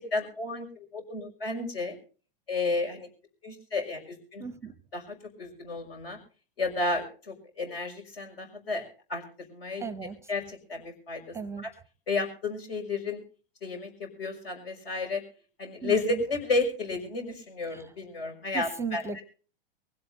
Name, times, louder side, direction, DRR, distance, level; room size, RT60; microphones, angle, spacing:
voice 1, 0.1-1.9 2.5-3.1 3.4-4.4 4.9-6.2 6.6-9.2 9.5-9.8 10.3-11.2 11.6-11.7 12.1-13.2 13.6-13.9 14.2-15.2 15.6-19.2, left 3 dB, 75° left, 4 dB, 6.3 m, -32 dB
voice 2, 4.4-4.7 9.8-10.2 11.3-11.7 15.8-16.2 17.7-17.9 18.5-19.2, right 5 dB, 10° right, 15 dB, 0.6 m, -36 dB
24.0 x 16.5 x 2.6 m, 0.39 s
hypercardioid pair, 110°, 30 cm